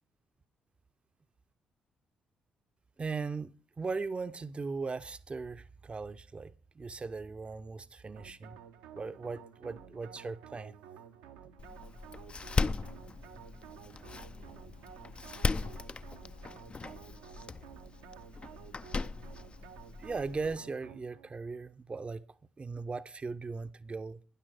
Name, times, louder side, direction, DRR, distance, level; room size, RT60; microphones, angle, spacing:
voice 1, 3.0-8.6 8.9-10.7 20.0-22.2 22.6-24.2, right 4 dB, 30° right, 0.6 m, -38 dB
sound 1, 8.2-21.3, right 8 dB, 75° right, 0.8 m, -52 dB
Door, 11.6-20.6, left 4 dB, 30° left, 0.5 m, -37 dB
voice 2, 12.7-13.8 14.2-15.7 16.1-16.6 16.9-17.4 23.6-23.7, left 1 dB, 85° left, 1.6 m, -64 dB
12.5 x 10.0 x 4.4 m
figure-of-eight pair, 40°, 4 cm